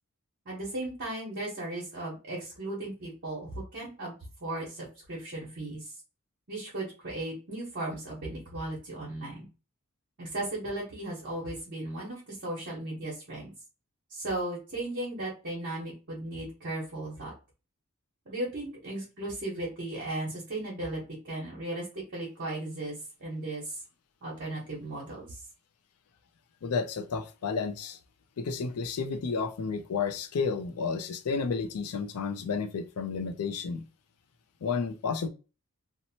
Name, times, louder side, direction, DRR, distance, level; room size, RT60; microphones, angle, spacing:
voice 1, 0.5-4.1 4.4-5.9 6.5-9.5 10.2-13.5 14.1-17.3 18.3-23.8 24.2-25.4, right 1 dB, 50° right, 1.0 m, -36 dB
voice 2, 26.6-28.0 28.4-33.9 34.6-35.3, left 5 dB, 85° left, 0.4 m, -31 dB
2.8 x 2.1 x 2.8 m
head